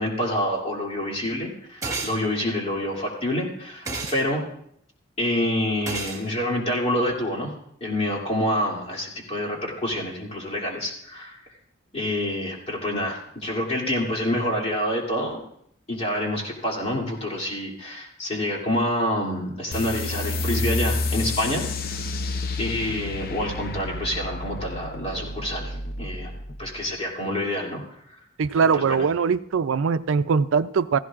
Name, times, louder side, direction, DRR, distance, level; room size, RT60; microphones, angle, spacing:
voice 1, 0.0-4.4 5.2-7.5 7.8-11.4 11.9-15.4 15.9-22.1 22.6-26.3 26.6-28.2 28.6-29.0, left 1 dB, 30° left, -2 dB, 2.7 m, -27 dB
sound 1, 1.8-2.2 3.9-4.2 5.9-6.2, right 3 dB, 15° right, 1.6 m, -30 dB
sound 2, 19.7-26.8, left 2 dB, 50° left, 0.6 m, -30 dB
voice 2, 28.4-31.0, right 5 dB, 85° right, 13 dB, 0.4 m, -21 dB
16.0 x 15.5 x 2.5 m, 0.69 s
head